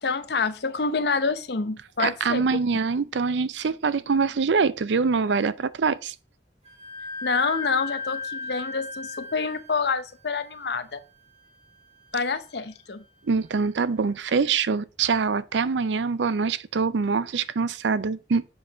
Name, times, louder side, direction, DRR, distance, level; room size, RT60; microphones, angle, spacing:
voice 1, 0.0-2.4 7.2-11.0 12.1-13.0, left 4 dB, 60° left, 0.7 m, -27 dB
voice 2, 2.0-6.1 13.2-18.5, right 5 dB, 70° right, 0.5 m, -24 dB
Wind instrument woodwind instrument, 6.7-14.1, left 4 dB, 35° right, 2.1 m, -38 dB
7.6 x 4.6 x 5.1 m
head